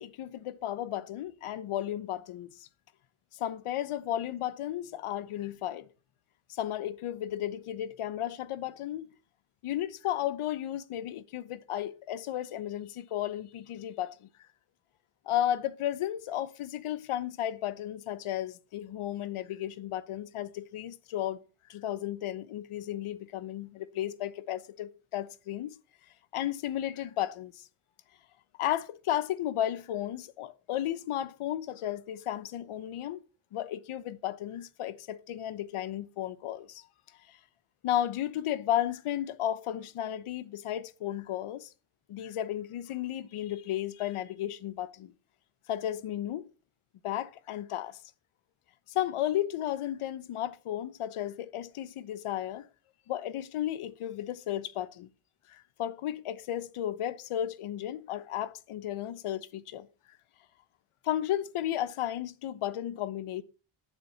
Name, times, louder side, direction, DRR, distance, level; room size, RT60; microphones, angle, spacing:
voice 1, 0.0-2.7 3.3-5.9 6.5-9.1 9.6-14.3 15.3-21.4 21.7-25.8 26.3-27.7 28.6-33.2 33.5-36.8 37.3-37.4 37.8-41.7 42.1-45.1 45.7-46.5 47.0-48.0 48.9-52.7 53.1-55.1 55.5-59.9 61.0-63.4, left 12 dB, 85° left, 1.0 m, -34 dB
7.5 x 6.9 x 7.3 m
cardioid pair, 120°, 49 cm